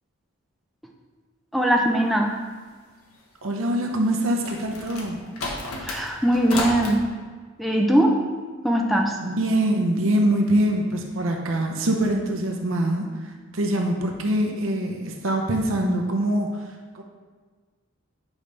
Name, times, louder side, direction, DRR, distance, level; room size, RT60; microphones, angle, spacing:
voice 1, 1.5-2.3 5.8-7.0 7.6-8.2 8.6-9.2, right 1 dB, ahead, -1 dB, 0.5 m, -20 dB
voice 2, 3.4-5.2 9.2-16.6 16.9-17.0, right 1 dB, 70° right, 2 dB, 0.7 m, -24 dB
sound 1, 4.0-7.0, left 2 dB, 90° left, 1.1 m, -32 dB
8.8 x 5.2 x 3.3 m, 1.5 s
head